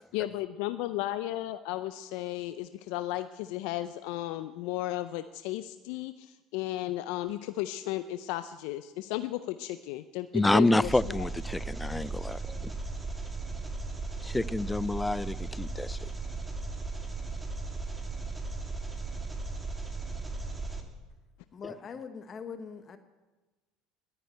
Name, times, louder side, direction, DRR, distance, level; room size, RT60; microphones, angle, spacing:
voice 1, 0.1-11.3, left 15 dB, 70° left, 0.5 m, -34 dB
voice 2, 10.3-12.7 14.2-16.0, left 2 dB, 10° left, 0.4 m, -28 dB
Engine, 10.8-20.8, right 3 dB, 15° right, 2.5 m, -36 dB
voice 3, 21.5-23.0, left 6 dB, 40° left, 1.1 m, -42 dB
12.0 x 11.0 x 9.0 m
hypercardioid pair, 75°, 0 cm